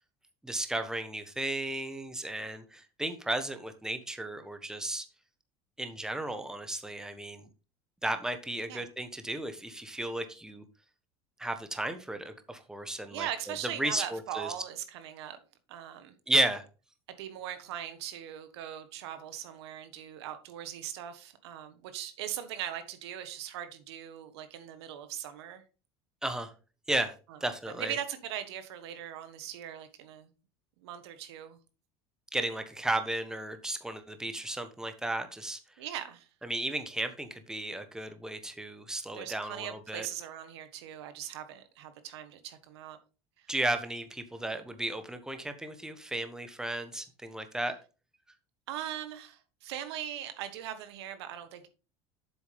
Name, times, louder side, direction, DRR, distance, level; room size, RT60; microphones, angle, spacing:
voice 1, 0.4-5.1 5.8-7.5 8.0-10.6 11.4-13.3 13.6-14.5 16.3-16.6 26.2-26.5 26.9-27.1 27.4-27.9 32.3-35.6 36.4-40.1 43.5-47.7, right 1 dB, 5° right, 1.2 m, -34 dB
voice 2, 13.1-15.4 15.7-16.2 17.1-25.6 27.3-27.4 27.7-30.3 30.8-31.6 35.8-36.3 39.1-43.0 43.4-43.5 48.7-51.7, right 10 dB, 85° right, 1.4 m, -40 dB
7.9 x 6.8 x 3.4 m
supercardioid pair, 105°, 13 cm